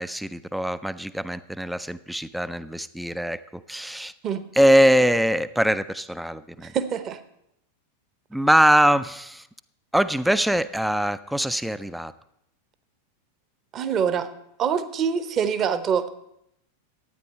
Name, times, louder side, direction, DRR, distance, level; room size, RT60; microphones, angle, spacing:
voice 1, 0.0-4.1 4.5-6.7 8.3-9.5 9.9-12.1, equal, ahead, 15 dB, 0.4 m, -22 dB
voice 2, 6.6-7.2 13.7-14.3 14.6-16.1, right 7 dB, 30° right, 12 dB, 0.9 m, -25 dB
13.0 x 9.2 x 4.3 m, 0.78 s
figure-of-eight pair, 90°, 0 cm